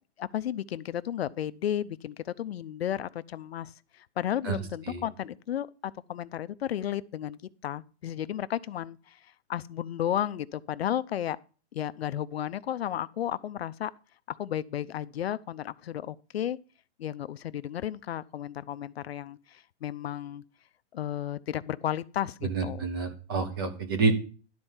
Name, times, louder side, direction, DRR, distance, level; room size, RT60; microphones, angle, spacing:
voice 1, 0.2-11.4 11.7-13.9 14.3-16.6 17.0-20.4 20.9-22.9, left 11 dB, 65° left, 0.5 m, -33 dB
voice 2, 4.4-5.0 22.4-24.1, right 4 dB, 20° right, 0.7 m, -28 dB
11.5 x 4.4 x 7.1 m
hypercardioid pair, 175°, 34 cm